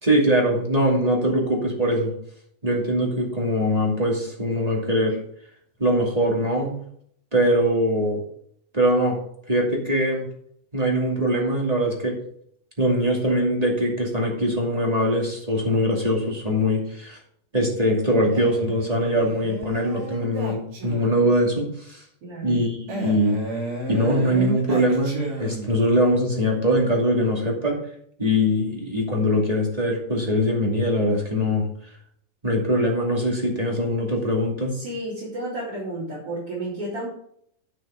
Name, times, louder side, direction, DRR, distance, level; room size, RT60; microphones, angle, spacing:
voice 1, 0.0-2.1 2.6-5.2 5.8-6.7 7.3-8.2 8.7-9.2 9.5-10.3 10.7-12.2 12.8-17.2 17.5-22.0 22.4-23.4 23.9-27.8 28.2-31.7 32.4-34.8, equal, 15° right, -1 dB, 2.0 m, -22 dB
Male speech man speaking, 18.3-21.3 22.9-25.9, right 2 dB, 70° right, 4.9 m, -32 dB
voice 2, 22.2-22.6 34.8-37.1, right 1 dB, 40° right, -8 dB, 4.3 m, -32 dB
10.5 x 6.5 x 5.0 m, 0.66 s
omnidirectional pair, 3.8 m